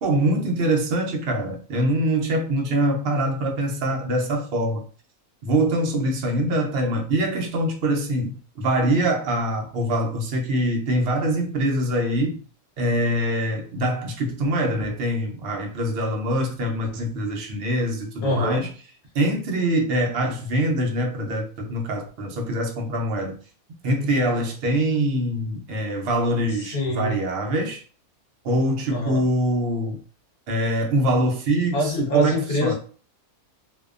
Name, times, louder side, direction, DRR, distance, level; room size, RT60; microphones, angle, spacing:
voice 1, 0.0-4.8 5.4-12.4 12.8-18.7 19.1-23.4 23.8-27.8 28.4-30.0 30.5-32.7, right 1 dB, 60° right, 0.6 m, -24 dB
voice 2, 18.2-18.7 26.6-27.2 28.9-29.2 31.7-32.7, left 1 dB, 50° left, 0.9 m, -24 dB
2.7 x 2.1 x 2.4 m
omnidirectional pair, 1.6 m